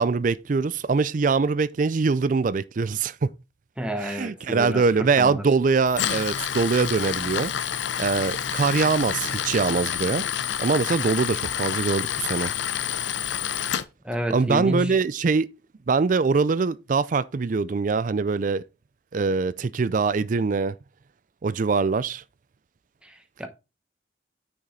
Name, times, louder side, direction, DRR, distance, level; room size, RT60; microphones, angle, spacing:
voice 1, 0.0-3.3 4.0-7.5 8.0-10.2 10.6-12.5 14.3-15.5 15.9-18.6 19.1-20.8 21.4-22.2, right 4 dB, 45° right, 0.4 m, -23 dB
voice 2, 3.8-5.4 14.0-15.0 23.0-23.5, equal, 5° right, 1.0 m, -30 dB
Tools, 5.9-13.8, left 9 dB, 75° left, 0.6 m, -28 dB
6.3 x 6.1 x 4.2 m
head